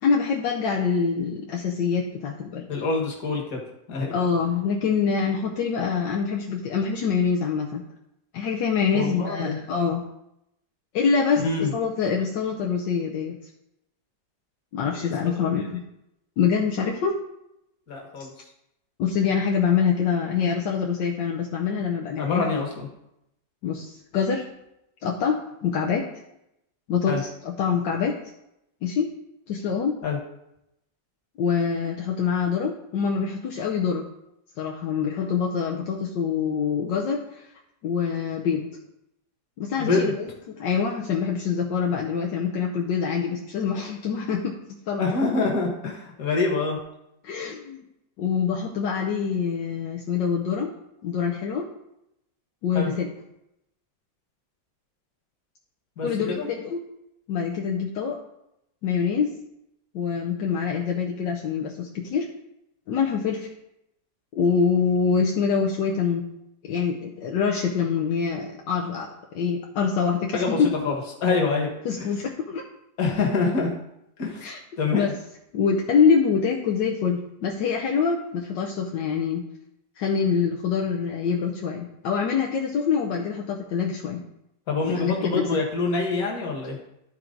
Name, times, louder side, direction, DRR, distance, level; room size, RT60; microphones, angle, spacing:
voice 1, 0.0-2.7 4.1-7.8 8.3-10.0 10.9-13.4 14.7-15.8 16.4-17.2 19.0-22.5 23.6-24.5 25.0-26.0 26.9-28.1 28.8-29.1 29.5-30.0 31.4-34.1 34.6-37.5 37.8-38.7 39.6-40.3 40.6-44.6 44.9-45.0 47.2-47.8 48.2-50.7 51.0-51.7 52.6-53.1 56.0-56.8 57.3-58.2 58.8-59.3 59.9-62.3 62.9-63.5 64.3-66.2 66.6-70.8 71.8-72.6 74.4-74.6 74.9-75.1 75.5-79.4 80.0-84.2 84.9-85.5, left 6 dB, 75° left, 0 dB, 1.4 m, -25 dB
voice 2, 2.7-3.6 3.9-4.1 8.9-9.6 11.4-11.7 14.9-15.1 15.6-15.7 17.9-18.5 22.2-22.9 27.1-27.2 30.0-30.2 39.8-40.1 45.0-46.8 52.7-52.9 56.0-56.5 70.3-71.7 72.0-72.1 73.0-73.7 74.2-74.5 74.8-75.1 84.7-86.8, left 3 dB, 50° left, -1 dB, 1.9 m, -26 dB
12.0 x 4.5 x 3.8 m, 0.83 s
omnidirectional pair, 2.0 m